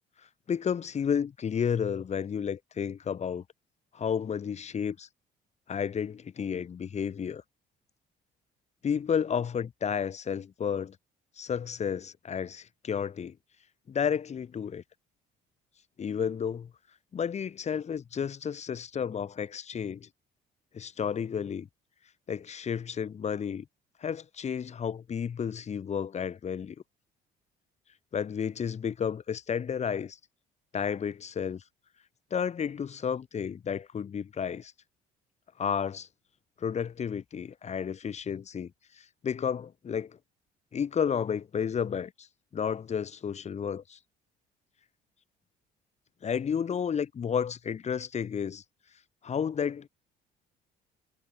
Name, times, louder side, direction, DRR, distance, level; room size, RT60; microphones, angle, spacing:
voice 1, 0.5-3.4 3.9-5.1 5.7-7.4 8.8-11.0 11.4-13.4 13.9-14.8 16.0-16.7 17.1-20.1 20.7-21.7 22.3-23.7 24.0-26.8 28.1-30.2 30.7-31.6 32.3-34.7 35.6-36.1 36.6-40.2 40.7-42.3 42.5-44.0 46.2-48.6 49.2-49.9, left 7 dB, 40° left, 6.8 m, -32 dB
cardioid pair, 110°, 17 cm